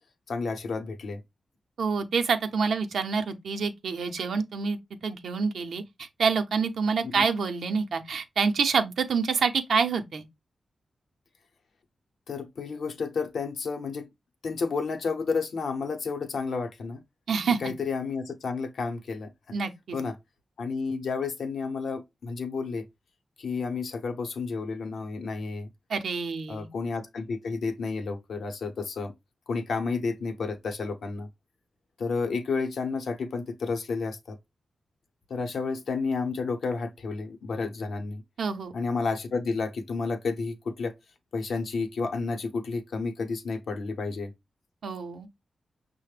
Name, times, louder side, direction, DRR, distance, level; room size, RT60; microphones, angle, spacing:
voice 1, 0.3-1.2 7.1-7.2 12.3-14.1 14.4-17.0 17.6-19.5 19.9-20.2 20.6-22.8 23.4-25.7 26.5-29.1 29.5-31.3 32.0-34.4 35.3-38.2 38.7-40.9 41.3-44.3, left 4 dB, 80° left, 0.7 m, -31 dB
voice 2, 1.8-10.2 17.3-17.6 19.5-20.0 25.9-26.7 38.4-38.7 44.8-45.3, right 5 dB, 80° right, 0.5 m, -27 dB
5.7 x 2.1 x 3.2 m
cardioid pair, 75°, 0 cm